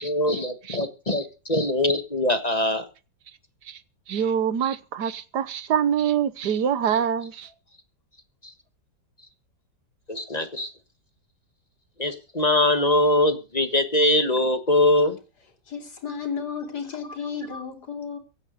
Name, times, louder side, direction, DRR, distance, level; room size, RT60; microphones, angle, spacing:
voice 1, 0.0-2.9 8.4-8.5 10.1-10.7 12.0-15.2 17.5-17.6, left 1 dB, 25° left, 1.4 m, -22 dB
voice 2, 4.1-7.5, right 8 dB, 75° right, 1.6 m, -25 dB
voice 3, 15.7-18.2, left 6 dB, 70° left, 3.6 m, -33 dB
16.5 x 9.1 x 6.6 m
omnidirectional pair, 1.8 m